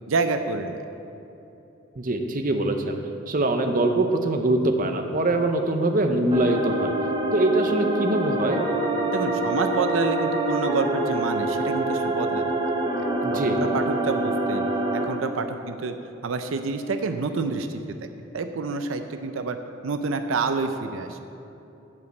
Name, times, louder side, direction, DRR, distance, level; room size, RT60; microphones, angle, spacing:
voice 1, 0.1-0.8 9.1-13.1 13.6-14.6 14.9-15.9 16.2-18.0 18.3-19.6 19.8-21.2, right 4 dB, 80° right, 7 dB, 0.5 m, -28 dB
voice 2, 2.0-3.0 3.3-6.9 7.3-8.6 13.2-13.6, right 2 dB, 45° right, 5 dB, 0.7 m, -23 dB
sound 1, 6.3-15.0, right 2 dB, 25° right, 1.1 m, -26 dB
9.6 x 5.2 x 7.8 m, 2.9 s
head